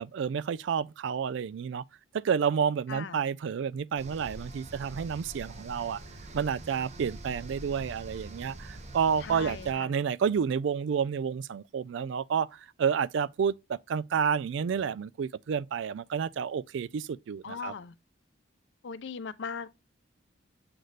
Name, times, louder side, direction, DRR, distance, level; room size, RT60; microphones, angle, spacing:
voice 1, 0.0-1.8 2.1-6.0 6.3-17.7, right 7 dB, 70° right, 0.3 m, -30 dB
sound 1, 4.0-9.7, right 1 dB, 35° right, 0.7 m, -44 dB
voice 2, 9.2-9.9 17.4-17.9 18.8-19.7, left 5 dB, 65° left, 0.5 m, -39 dB
7.7 x 4.0 x 3.2 m
head